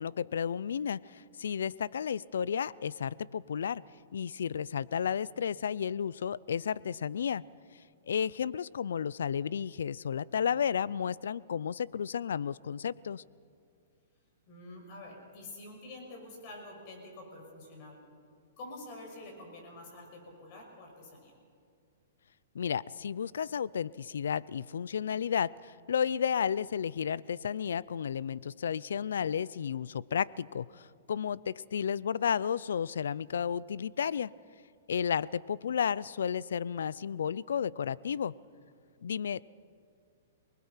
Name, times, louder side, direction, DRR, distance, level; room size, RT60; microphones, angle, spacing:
voice 1, 0.0-3.8 4.1-7.4 8.1-13.2 22.5-34.3 34.9-38.3 39.0-39.6, left 7 dB, 85° left, 22 dB, 0.5 m, -32 dB
voice 2, 14.5-18.0 18.6-21.3, left 2 dB, 40° left, 1 dB, 6.2 m, -47 dB
28.0 x 20.0 x 5.8 m, 2.3 s
hypercardioid pair, 150°, 0 cm